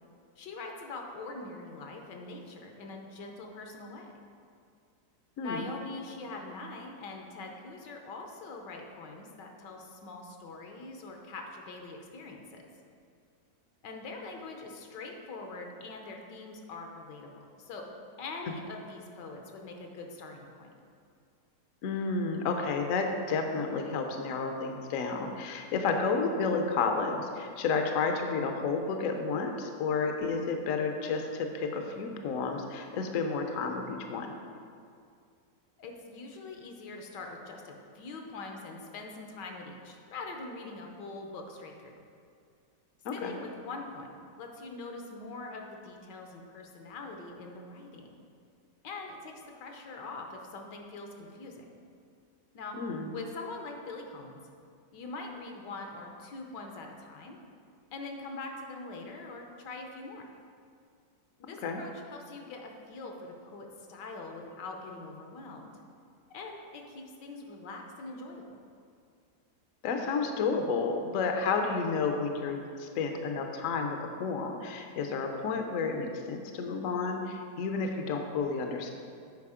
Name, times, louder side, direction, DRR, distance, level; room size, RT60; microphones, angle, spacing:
voice 1, 0.4-4.2 5.4-12.6 13.8-17.8 18.2-20.7 35.8-41.9 43.1-48.2 48.8-51.6 52.5-52.8 53.1-54.4 54.9-57.4 57.9-60.3 61.4-65.7 66.3-68.6, left 3 dB, 80° left, 2 dB, 1.5 m, -43 dB
voice 2, 5.4-5.7 21.8-34.3 43.0-43.3 52.8-53.1 61.6-61.8 69.8-78.9, left 4 dB, 65° left, 4 dB, 0.9 m, -31 dB
8.3 x 4.9 x 4.9 m, 2.3 s
omnidirectional pair, 1.9 m